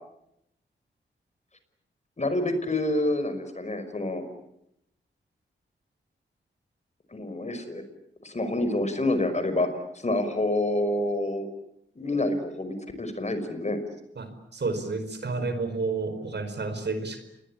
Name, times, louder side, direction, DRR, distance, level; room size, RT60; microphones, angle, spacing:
voice 1, 2.2-4.3 7.1-7.8 8.2-9.7 10.0-11.5 12.0-13.8, left 1 dB, 35° left, 10 dB, 5.4 m, -27 dB
voice 2, 14.2-17.2, right 3 dB, 60° right, 9 dB, 5.0 m, -30 dB
28.5 x 21.5 x 8.7 m, 0.80 s
cardioid pair, 55°, 20 cm